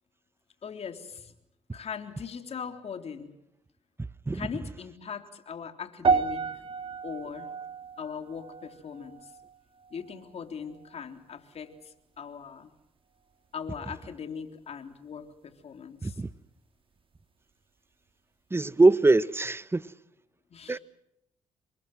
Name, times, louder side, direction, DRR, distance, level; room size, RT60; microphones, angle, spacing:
voice 1, 0.6-1.3 1.7-3.3 4.3-6.5 7.0-7.5 8.0-9.3 9.9-12.7 13.5-16.2 20.5-20.8, left 6 dB, 55° left, 3.7 m, -40 dB
sound 1, 6.0-10.4 10.7-11.1 11.7-11.8, right 5 dB, 45° right, 1.9 m, -31 dB
voice 2, 18.5-19.8 20.7-20.8, right 2 dB, 20° right, 1.1 m, -22 dB
28.0 x 23.5 x 6.1 m
cardioid pair, 70°, 13 cm